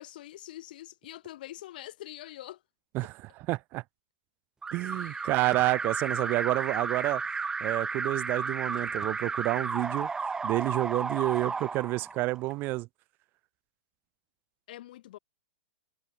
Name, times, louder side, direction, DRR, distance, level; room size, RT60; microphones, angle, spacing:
voice 1, 0.0-2.6 3.0-3.1 4.9-5.3 14.7-15.2, left 14 dB, 55° left, 6.4 m, -45 dB
voice 2, 3.5-3.8 4.7-7.2 7.6-10.1 10.4-12.9, right 21 dB, 35° right, 1.1 m, -29 dB
Alarm, 4.6-12.5, right 4 dB, 10° right, 7.7 m, -33 dB
figure-of-eight pair, 110°, 6 cm